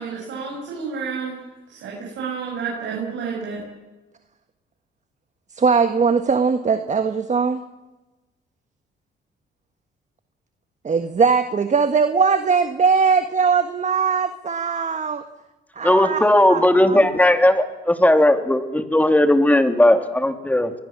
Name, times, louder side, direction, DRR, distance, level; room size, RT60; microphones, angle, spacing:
voice 1, 0.0-1.4 1.7-3.6, right 5 dB, 75° right, -3 dB, 7.5 m, -30 dB
voice 2, 5.5-7.6 10.8-15.2 15.7-17.0, right 5 dB, 35° right, 9 dB, 1.4 m, -20 dB
voice 3, 15.8-20.7, left 1 dB, 10° left, 7 dB, 2.8 m, -17 dB
26.5 x 21.0 x 7.4 m, 1.1 s
cardioid pair, 90°, 20 cm